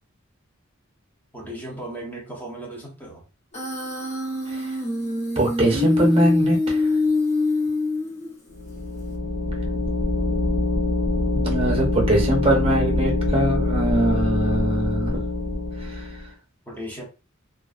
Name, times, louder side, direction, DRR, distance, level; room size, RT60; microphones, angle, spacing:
voice 1, 1.3-3.2 16.7-17.1, right 1 dB, 10° left, 0.7 m, -36 dB
Human voice, 3.5-8.5, left 3 dB, 35° left, 1.0 m, -24 dB
voice 2, 5.4-6.9 11.3-15.2 15.8-16.1, right 1 dB, 30° right, 0.8 m, -22 dB
sound 1, 8.5-16.2, left 2 dB, 75° left, 0.6 m, -24 dB
2.3 x 2.3 x 2.4 m
head